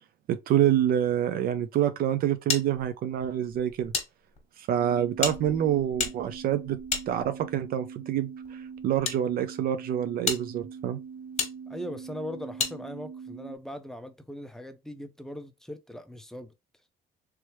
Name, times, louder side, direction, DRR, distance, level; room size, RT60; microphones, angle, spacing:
voice 1, 0.3-3.9 4.6-6.8 7.1-11.0, right 10 dB, 60° right, 0.5 m, -27 dB
sound 1, 2.5-4.1 4.4-4.5 5.2-7.6 8.4-9.2 9.7-9.8 10.2-10.4 11.4-11.5 12.6-12.8, left 5 dB, 40° left, 1.3 m, -32 dB
sound 2, 4.8-13.6, right 6 dB, 45° right, 1.0 m, -43 dB
voice 2, 11.7-16.5, left 1 dB, 5° left, 0.6 m, -40 dB
3.3 x 3.1 x 3.0 m
cardioid pair, 110°, 17 cm